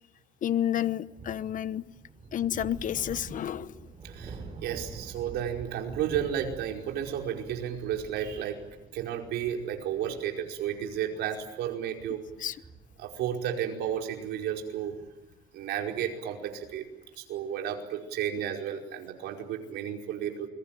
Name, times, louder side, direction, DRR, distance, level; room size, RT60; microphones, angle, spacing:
voice 1, 0.4-1.8 2.3-3.8 12.4-12.5, left 11 dB, 50° left, 15 dB, 1.1 m, -30 dB
sound 1, 1.1-16.9, right 4 dB, 30° right, 6.2 m, -48 dB
voice 2, 4.0-8.6 8.9-12.2 13.0-14.9 15.5-16.8 17.1-20.5, right 9 dB, 80° right, 2 dB, 5.1 m, -33 dB
29.0 x 22.5 x 9.1 m, 0.96 s
cardioid pair, 110°, 17 cm